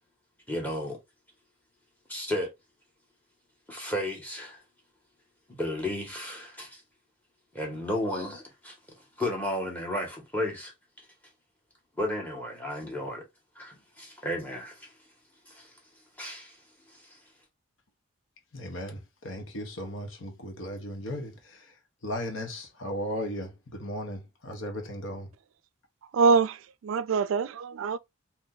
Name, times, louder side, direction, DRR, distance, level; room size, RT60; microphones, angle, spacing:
voice 1, 0.5-1.0 2.1-2.5 3.7-4.6 5.5-6.8 7.5-8.7 9.2-10.7 12.0-13.3 13.6-14.9 15.5-15.7 16.2-16.6 16.9-17.2, left 1 dB, 10° left, 1.2 m, -33 dB
voice 2, 18.5-21.7 22.0-25.3, equal, 75° left, 1.1 m, -36 dB
voice 3, 26.1-28.0, right 4 dB, 90° right, 0.3 m, -24 dB
2.9 x 2.7 x 3.8 m
head